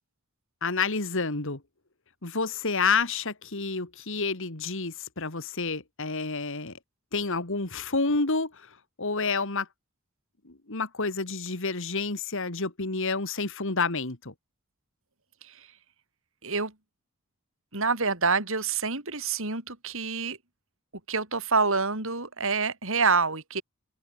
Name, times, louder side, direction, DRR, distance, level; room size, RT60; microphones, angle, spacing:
voice 1, 0.6-1.6 2.2-6.7 7.1-8.7 9.0-9.7 10.4-14.3, left 4 dB, 65° left, 2.5 m, -29 dB
voice 2, 16.4-16.7 17.7-20.4 21.1-23.6, right 4 dB, 65° right, 5.9 m, -27 dB
open air
head